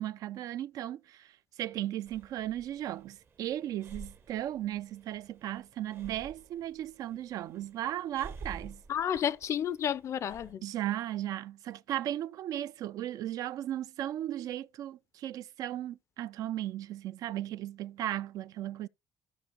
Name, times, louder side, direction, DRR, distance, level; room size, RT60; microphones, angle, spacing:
voice 1, 0.0-8.8 10.6-18.9, right 12 dB, 65° right, 0.3 m, -36 dB
Breathing, 2.1-10.5, right 4 dB, 35° right, 0.7 m, -50 dB
voice 2, 8.9-10.6, left 9 dB, 45° left, 0.4 m, -31 dB
14.5 x 5.1 x 2.9 m
cardioid pair, 115°, 7 cm